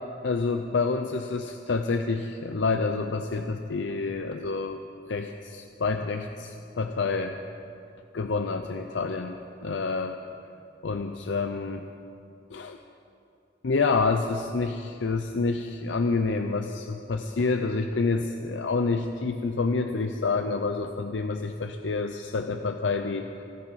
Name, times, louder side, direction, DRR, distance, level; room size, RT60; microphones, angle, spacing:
voice 1, 0.2-4.8 5.1-7.4 8.1-9.4 9.6-10.2 10.8-11.9 12.5-12.8 13.6-23.4, left 4 dB, 85° left, 6 dB, 0.6 m, -28 dB
26.5 x 10.5 x 4.2 m, 2.7 s
head